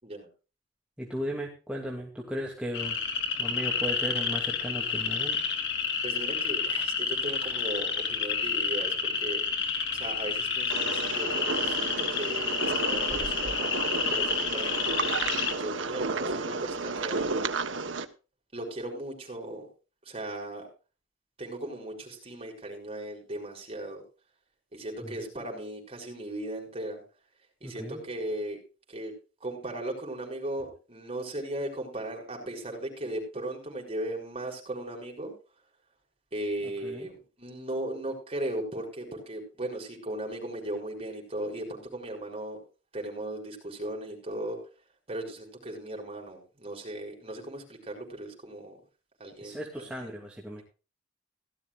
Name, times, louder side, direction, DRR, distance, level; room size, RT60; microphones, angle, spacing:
voice 1, 1.0-3.0 3.4-5.4 25.0-25.1 27.6-28.0 36.8-37.1 49.4-50.6, equal, 5° right, -3 dB, 2.8 m, -36 dB
sound 1, 2.7-15.5, left 5 dB, 60° left, 2.9 m, -30 dB
voice 2, 6.0-9.4 9.9-15.0 15.5-17.3 18.5-19.7 20.0-20.7 21.4-24.0 24.7-27.0 27.6-28.6 28.9-29.1 29.4-35.3 36.3-42.6 42.9-44.6 45.1-48.8 49.2-50.1, right 1 dB, 30° right, 1 dB, 6.3 m, -37 dB
sound 2, 10.7-18.1, right 3 dB, 80° right, 1.3 m, -32 dB
17.5 x 14.0 x 2.5 m, 0.34 s
head